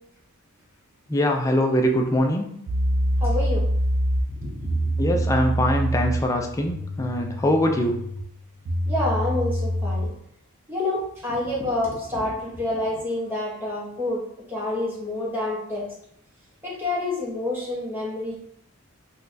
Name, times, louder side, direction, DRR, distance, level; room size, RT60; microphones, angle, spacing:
voice 1, 1.1-2.5 5.0-8.0, left 1 dB, 15° left, 3 dB, 0.3 m, -22 dB
sound 1, 2.7-10.2, equal, 75° right, 0.4 m, -26 dB
voice 2, 3.2-3.6 4.4-5.2 8.9-10.1 10.7-14.2 14.5-15.9 16.6-18.4, left 2 dB, 10° right, -6 dB, 0.9 m, -28 dB
3.9 x 2.3 x 2.6 m, 0.73 s
head